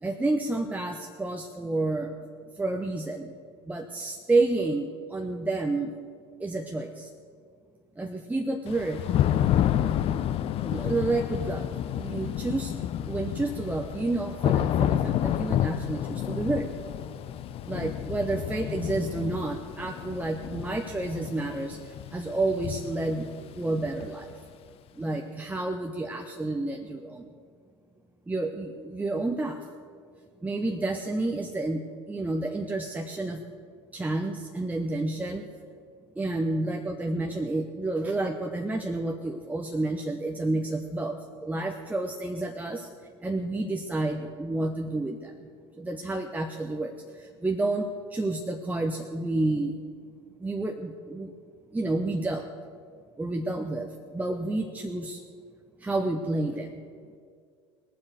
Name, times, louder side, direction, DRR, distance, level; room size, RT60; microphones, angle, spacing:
voice 1, 0.0-2.1 2.6-3.3 3.7-6.0 6.4-7.1 8.0-9.0 10.6-11.7 11.9-12.7 13.1-16.7 17.7-21.8 22.1-23.3 23.6-24.3 25.0-27.3 28.3-29.6 30.4-33.4 33.9-35.5 36.2-42.9 43.2-45.3 45.8-46.9 47.4-49.8 50.4-51.3 51.7-52.5 53.2-53.9 54.1-55.2 55.8-56.8, right 2 dB, 10° right, 3 dB, 0.9 m, -30 dB
Thunder / Rain, 8.7-24.4, left 11 dB, 40° left, 0.7 m, -30 dB
19.5 x 7.4 x 6.5 m, 2.1 s
figure-of-eight pair, 70°, 15 cm